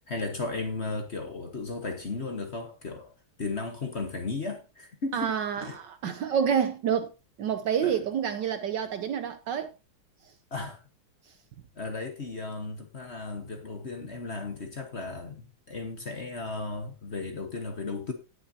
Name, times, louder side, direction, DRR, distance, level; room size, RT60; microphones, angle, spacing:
voice 1, 0.0-3.1 3.4-5.3 5.6-5.8 6.0-6.1 7.8-7.9 10.5-10.8 11.8-18.1, left 3 dB, 35° left, 1.3 m, -35 dB
voice 2, 5.1-7.1 7.4-9.7 10.2-10.3 11.2-11.3, right 8 dB, 65° right, 1.2 m, -28 dB
17.5 x 6.7 x 2.7 m
omnidirectional pair, 2.4 m